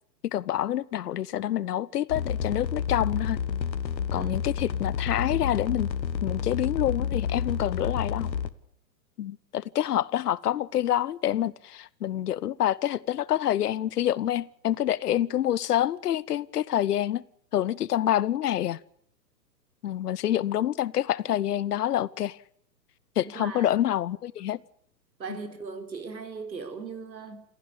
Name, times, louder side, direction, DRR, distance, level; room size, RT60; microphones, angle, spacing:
voice 1, 0.2-3.4 4.1-5.9 6.2-8.3 9.2-17.2 17.5-18.8 19.8-22.4 23.2-24.6, left 12 dB, 65° left, 1.0 m, -27 dB
sound 1, 2.1-8.5, left 7 dB, 85° left, 1.5 m, -30 dB
voice 2, 23.3-23.7 25.2-27.4, right 5 dB, 90° right, 4.2 m, -38 dB
26.5 x 15.5 x 8.3 m
hypercardioid pair, 130°, 50 cm